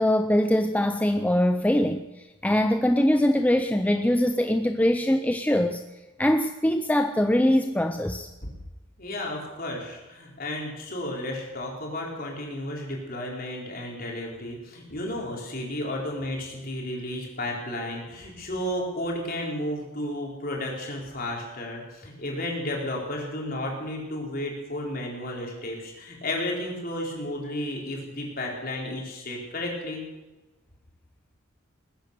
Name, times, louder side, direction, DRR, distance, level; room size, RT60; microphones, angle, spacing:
voice 1, 0.0-2.1 2.4-5.8 6.2-8.3, left 1 dB, 5° left, 7 dB, 0.5 m, -22 dB
voice 2, 9.0-30.0, left 1 dB, 45° left, -1 dB, 4.3 m, -33 dB
20.5 x 10.5 x 6.8 m, 1.1 s
head